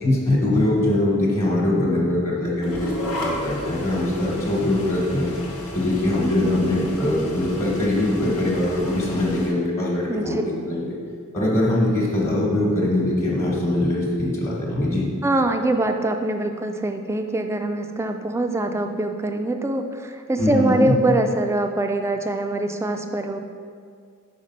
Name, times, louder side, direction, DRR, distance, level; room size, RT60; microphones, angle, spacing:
voice 1, 0.0-5.3 5.7-10.9 11.3-15.1 20.4-21.0, left 1 dB, 35° left, -4 dB, 1.2 m, -22 dB
sound 1, 2.6-9.5, equal, 80° left, 1.1 m, -34 dB
voice 2, 10.1-10.4 15.2-23.4, right 2 dB, 15° right, 5 dB, 0.3 m, -23 dB
5.1 x 4.9 x 5.3 m, 2.1 s
head